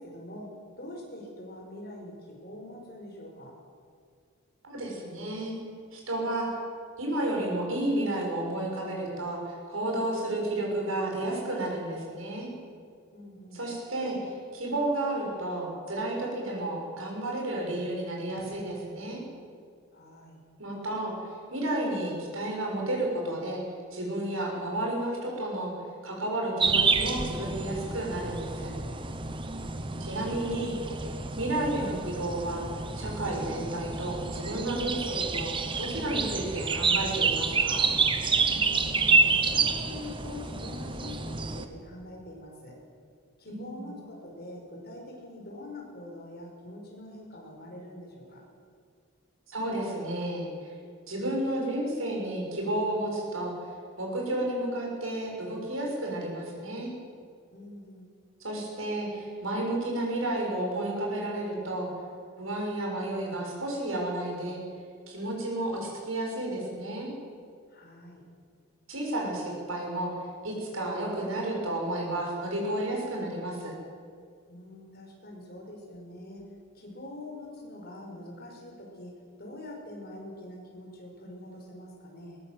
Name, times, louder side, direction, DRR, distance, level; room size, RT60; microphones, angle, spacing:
voice 1, 0.0-3.6 13.1-13.7 19.9-20.4 33.0-33.2 38.5-42.8 43.4-48.4 57.5-58.0 67.7-68.2 74.5-76.4 76.7-79.1 79.4-82.4, left 1 dB, 45° left, -1 dB, 5.4 m, -44 dB
voice 2, 4.6-5.5 5.9-6.5 7.0-12.5 13.5-19.2 20.6-21.2 21.5-23.6 23.9-25.7 26.0-28.7 30.0-31.1 31.4-32.7 32.9-37.9 43.5-43.9 49.5-50.5 51.1-53.5 54.0-56.9 58.4-61.9 62.4-64.6 65.1-67.1 68.9-70.1 70.4-73.7, right 1 dB, 75° right, -1 dB, 6.5 m, -32 dB
sound 1, 26.6-41.7, right 4 dB, 25° right, 1.1 m, -28 dB
20.5 x 18.5 x 7.8 m, 2.2 s
head